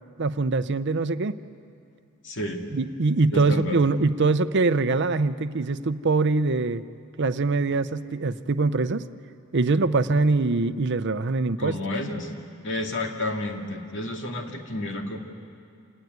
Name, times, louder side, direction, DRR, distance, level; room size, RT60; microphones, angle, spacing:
voice 1, 0.2-1.4 2.7-6.8 7.2-9.0 9.5-11.8, right 3 dB, 55° right, 13 dB, 0.7 m, -23 dB
voice 2, 2.2-2.6 3.3-3.8 11.6-12.3 12.6-15.2, left 1 dB, 60° left, 3 dB, 2.4 m, -30 dB
27.5 x 18.5 x 9.6 m, 2.3 s
head